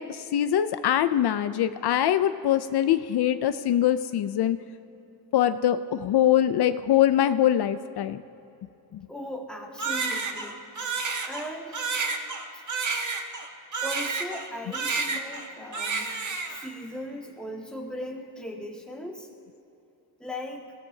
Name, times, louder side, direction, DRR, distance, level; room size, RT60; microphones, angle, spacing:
voice 1, 0.0-4.6 5.3-8.2 8.9-9.0, left 11 dB, 75° left, 10 dB, 0.6 m, -23 dB
voice 2, 9.1-10.6 11.2-11.8 12.5-12.6 13.8-16.1 16.5-19.3 20.2-20.7, equal, ahead, -2 dB, 1.9 m, -38 dB
Crying sobbing, 9.8-14.5 14.7-15.5 15.7-16.7, right 4 dB, 50° right, 1.3 m, -30 dB
28.5 x 17.0 x 2.8 m, 2.9 s
wide cardioid pair, 160°, 39 cm